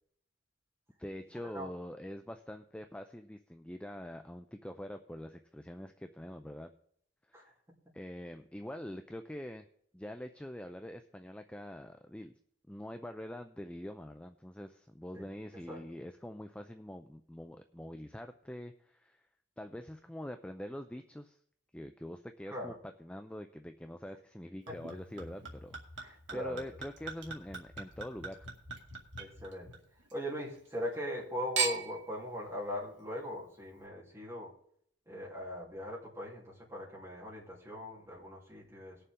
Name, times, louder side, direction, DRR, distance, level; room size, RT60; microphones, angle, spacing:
voice 1, 1.0-6.7 7.3-7.5 7.9-9.6 9.9-12.3 12.7-19.3 19.6-21.4 21.7-22.7 23.0-28.5, left 1 dB, 5° left, 7 dB, 0.4 m, -44 dB
voice 2, 15.1-15.8 22.5-22.7 24.7-25.0 26.0-26.6 29.2-29.8 30.1-34.5 35.0-39.0, equal, 15° right, -6 dB, 3.4 m, -40 dB
Chink clink / Liquid, 24.7-30.2 30.5-31.2 31.6-32.1 32.8-32.9, right 5 dB, 80° right, 2.3 m, -40 dB
19.5 x 6.8 x 3.7 m, 0.66 s
head